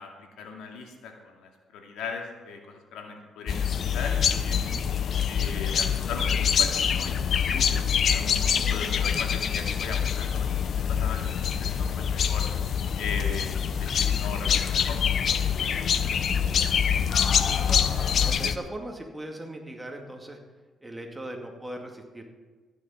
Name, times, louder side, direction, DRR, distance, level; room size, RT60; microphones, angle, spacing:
voice 1, 0.0-4.7 5.2-11.2 11.6-12.5 13.0-16.1, left 5 dB, 85° left, 2 dB, 2.2 m, -39 dB
sound 1, 3.5-18.6, left 7 dB, 60° left, 0.8 m, -25 dB
voice 2, 17.2-20.4 20.8-22.3, right 1 dB, 10° right, 2 dB, 2.3 m, -39 dB
14.5 x 10.0 x 5.8 m, 1.3 s
cardioid pair, 90°, 0 cm